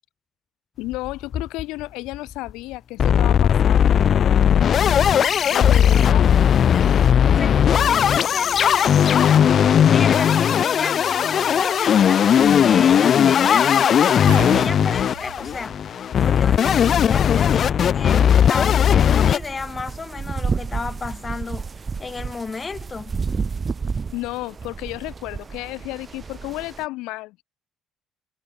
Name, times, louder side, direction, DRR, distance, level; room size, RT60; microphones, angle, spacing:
voice 1, 0.8-4.0 5.5-6.2 24.1-27.4, left 20 dB, 75° left, 3.1 m, -32 dB
sound 1, 0.9-1.8 2.1-2.2 2.5-2.6 3.0-19.4, left 8 dB, 55° left, 0.4 m, -17 dB
voice 2, 5.8-6.1 7.4-9.0 9.9-12.3 12.6-15.8 16.2-21.7 22.0-23.2, left 4 dB, 30° left, 5.3 m, -33 dB
sound 2, 14.3-17.1 17.4-17.5 20.4-20.5 20.9-21.0, right 18 dB, 85° right, 5.5 m, -36 dB
sound 3, 16.2-26.9, right 5 dB, 35° right, 4.9 m, -32 dB
hypercardioid pair, 55°, 0 cm